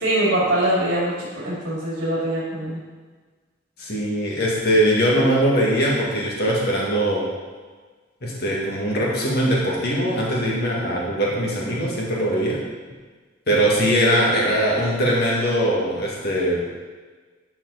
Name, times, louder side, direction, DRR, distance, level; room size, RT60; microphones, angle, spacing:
voice 1, 0.0-2.8, right 1 dB, 60° right, -8 dB, 2.6 m, -23 dB
voice 2, 3.8-7.2 8.2-12.6 13.5-16.6, equal, 55° left, -4 dB, 2.1 m, -21 dB
11.0 x 6.0 x 4.1 m, 1.4 s
head